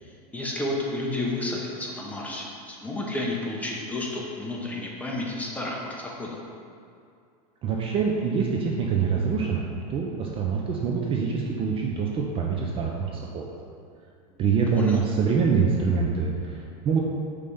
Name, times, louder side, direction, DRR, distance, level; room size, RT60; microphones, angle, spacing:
voice 1, 0.0-6.4 14.7-15.0, left 2 dB, 5° left, -3 dB, 0.8 m, -31 dB
voice 2, 7.6-13.5 14.4-17.0, right 5 dB, 25° right, -1 dB, 0.5 m, -25 dB
5.2 x 3.3 x 5.4 m, 2.4 s
supercardioid pair, 130°, 20 cm